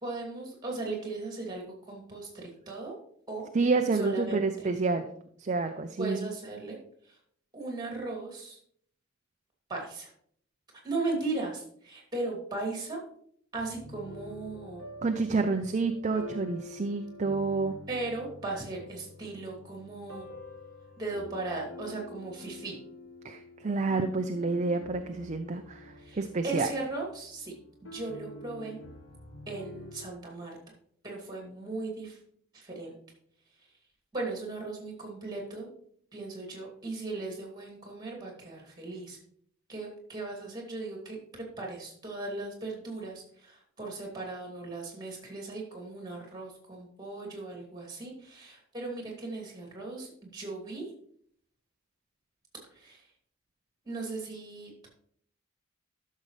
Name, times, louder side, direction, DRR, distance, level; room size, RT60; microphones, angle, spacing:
voice 1, 0.0-3.0 3.3-3.5 3.9-4.7 6.0-6.8 7.0-7.2 7.5-8.6 9.7-10.1 10.8-13.0 13.5-14.8 17.9-20.3 21.0-22.8 26.0-27.6 27.8-28.8 29.5-30.6 31.0-32.2 32.5-33.0 34.1-35.7 36.1-39.2 39.7-50.9 52.7-53.1 53.8-54.9, right 3 dB, 20° right, 0 dB, 2.5 m, -37 dB
voice 2, 3.5-5.1 5.4-6.3 15.0-17.8 23.2-26.7, right 3 dB, 35° right, 6 dB, 0.5 m, -29 dB
sound 1, 13.5-30.1, left 2 dB, 70° left, 1.4 m, -47 dB
12.5 x 6.5 x 3.2 m, 0.64 s
head